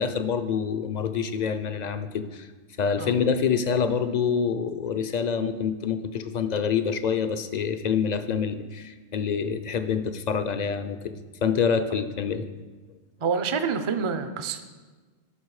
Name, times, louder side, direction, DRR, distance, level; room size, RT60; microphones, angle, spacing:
voice 1, 0.0-2.5 2.8-11.1 11.4-12.5, left 6 dB, 50° left, 10 dB, 0.6 m, -26 dB
voice 2, 13.2-14.6, right 5 dB, 40° right, 9 dB, 0.5 m, -27 dB
11.5 x 5.8 x 4.8 m, 1.3 s
omnidirectional pair, 1.0 m